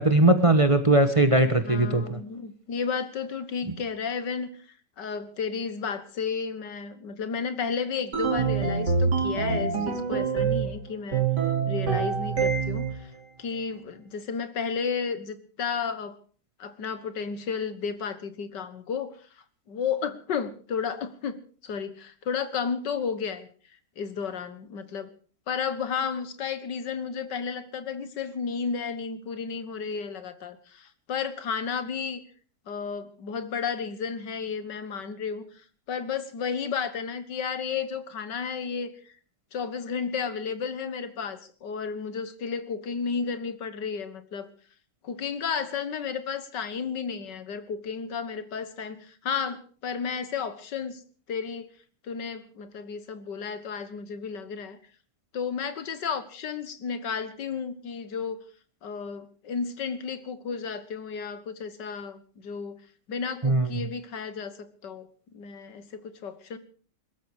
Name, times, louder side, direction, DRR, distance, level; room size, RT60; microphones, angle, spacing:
voice 1, 0.0-2.2 63.4-63.7, right 2 dB, 20° right, 9 dB, 1.1 m, -20 dB
voice 2, 1.6-4.7 5.0-11.3 11.7-13.1 13.4-16.2 16.6-19.2 19.7-23.5 24.0-25.1 25.5-32.2 32.7-35.4 35.9-39.1 39.5-44.5 45.0-51.0 51.3-51.7 52.0-54.8 55.3-58.4 58.8-62.8 63.1-66.6, left 6 dB, 80° left, 12 dB, 2.0 m, -33 dB
sound 1, 8.1-10.8 11.1-13.0, right 5 dB, 75° right, 3.6 m, -25 dB
22.0 x 13.5 x 4.9 m, 0.41 s
omnidirectional pair, 1.8 m